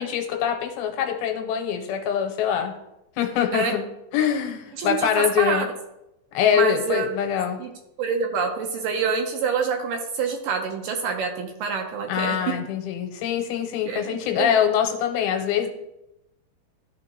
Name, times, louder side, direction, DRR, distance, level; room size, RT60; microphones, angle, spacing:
voice 1, 0.0-2.7 3.2-3.8 4.1-5.6 6.3-7.6 12.1-15.7, left 9 dB, 85° left, 4 dB, 2.6 m, -24 dB
voice 2, 4.8-5.7 6.5-7.1 7.6-7.7 8.0-12.4 13.9-14.6, right 5 dB, 75° right, 4 dB, 2.1 m, -26 dB
13.5 x 4.6 x 2.9 m, 0.89 s
omnidirectional pair, 4.3 m